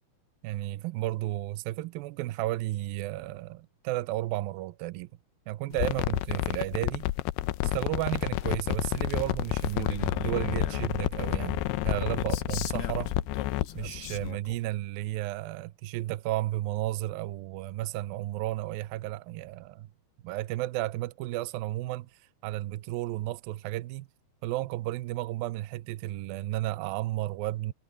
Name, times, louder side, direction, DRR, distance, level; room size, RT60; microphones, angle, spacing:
voice 1, 0.4-5.1 5.5-7.1 7.6-13.1 13.7-19.9 20.2-22.1 22.4-24.1 24.4-27.7, right 16 dB, 90° right, 2.0 m, -33 dB
sound 1, 5.7-14.3, left 17 dB, 85° left, 2.3 m, -30 dB
sound 2, 9.0-13.8, right 1 dB, 10° right, 3.9 m, -43 dB
Male speech man speaking, 9.6-10.9 12.2-14.6, left 11 dB, 70° left, 3.2 m, -41 dB
omnidirectional pair, 5.1 m